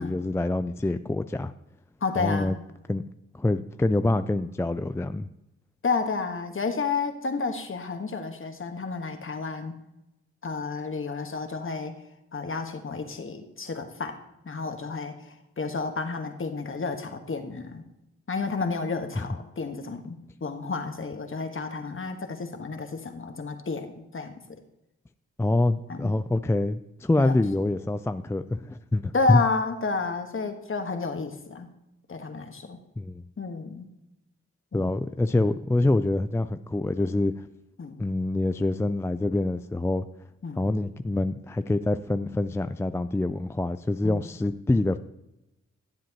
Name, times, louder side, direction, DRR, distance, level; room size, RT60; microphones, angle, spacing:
voice 1, 0.0-1.5 2.2-2.6 2.9-3.0 3.3-5.3 19.2-19.3 25.4-29.4 33.0-33.2 34.7-37.3 38.0-40.1 40.6-45.0, left 2 dB, 10° left, 11 dB, 0.4 m, -26 dB
voice 2, 2.0-2.5 5.8-9.8 10.4-11.9 12.3-14.2 14.4-17.8 18.3-24.6 25.9-26.1 27.2-27.4 29.1-31.7 32.1-32.8 33.4-33.9 34.7-34.9 37.8-38.0 40.4-40.6 44.0-44.2, left 4 dB, 45° left, 6 dB, 1.5 m, -31 dB
15.5 x 7.6 x 3.0 m, 0.90 s
supercardioid pair, 50°, 29 cm